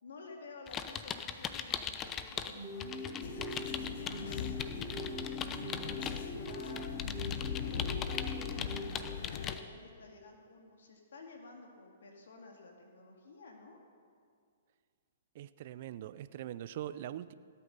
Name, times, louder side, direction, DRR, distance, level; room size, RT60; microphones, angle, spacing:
voice 1, 0.0-5.3 5.8-6.9 7.3-13.8, left 3 dB, 70° left, 2 dB, 2.2 m, -53 dB
sound 1, 0.7-2.5 2.8-9.6, left 8 dB, 25° left, 0.7 m, -40 dB
sound 2, 2.4-9.6, left 1 dB, 10° right, 3.6 m, -42 dB
sound 3, 3.2-9.6, left 8 dB, 55° left, 0.8 m, -41 dB
voice 2, 15.3-17.3, right 12 dB, 50° right, 15 dB, 0.5 m, -42 dB
17.0 x 8.4 x 5.4 m, 2.2 s
hypercardioid pair, 125°, 0 cm